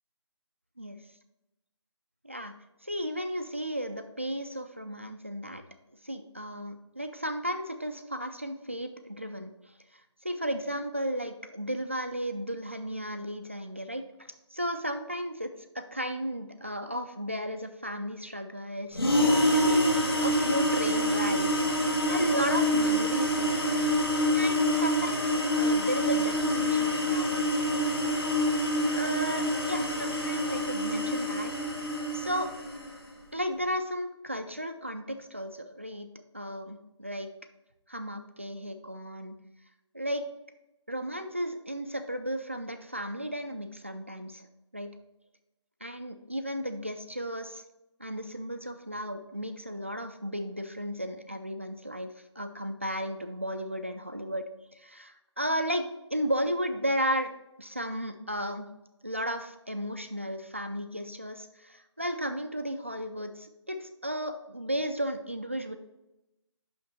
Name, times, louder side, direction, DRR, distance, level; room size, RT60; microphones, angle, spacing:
voice 1, 2.8-5.6 6.0-9.5 9.9-20.0 20.2-21.7 22.1-23.9 24.3-27.9 28.9-31.5 32.1-32.5 33.3-36.1 36.3-37.3 37.9-39.4 39.9-40.2 40.9-44.5 44.7-44.9 45.8-47.6 48.0-54.4 54.7-57.3 57.6-58.7 59.0-65.8, equal, 25° right, 7 dB, 0.3 m, -34 dB
sound 1, 18.9-32.9, equal, 50° left, 1.8 m, -26 dB
5.9 x 5.9 x 4.3 m, 0.93 s
figure-of-eight pair, 170°, 16 cm